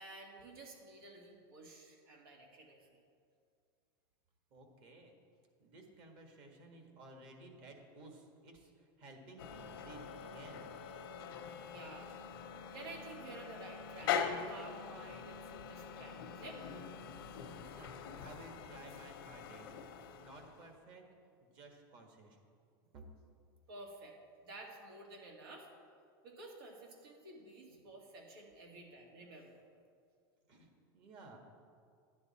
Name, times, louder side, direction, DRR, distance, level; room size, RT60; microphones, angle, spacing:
voice 1, 0.0-3.0 11.6-12.1 12.7-16.6 23.7-24.2 24.4-25.7 26.2-29.6, right 2 dB, 85° right, 0 dB, 2.2 m, -52 dB
voice 2, 4.5-5.2 5.6-10.6 17.7-19.7 20.2-21.1 21.4-22.4 22.9-23.0 30.5-31.4, right 2 dB, 45° right, 2 dB, 1.7 m, -55 dB
sound 1, 9.4-20.8, left 7 dB, 85° left, 0.9 m, -43 dB
11.0 x 9.8 x 4.2 m, 2.3 s
supercardioid pair, 150°, 12 cm